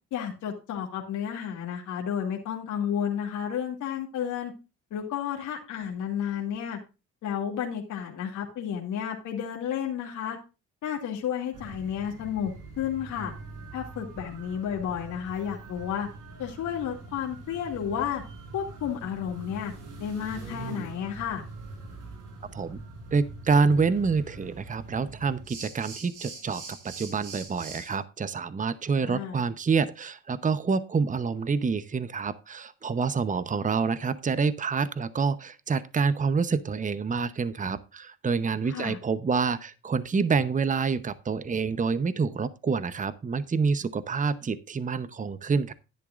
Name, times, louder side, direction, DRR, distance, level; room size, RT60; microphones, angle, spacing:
voice 1, 0.1-4.5 4.9-6.8 7.2-10.4 10.8-13.3 13.7-16.1 16.4-18.2 18.5-19.7 20.0-21.4 28.9-29.4 38.7-39.0, left 9 dB, 85° left, 0 dB, 2.5 m, -32 dB
sound 1, 11.5-28.0, right 3 dB, 90° right, 4.4 m, -43 dB
voice 2, 23.1-45.7, right 5 dB, 25° right, 15 dB, 0.8 m, -27 dB
12.0 x 10.0 x 2.5 m, 0.29 s
cardioid pair, 90°, 30 cm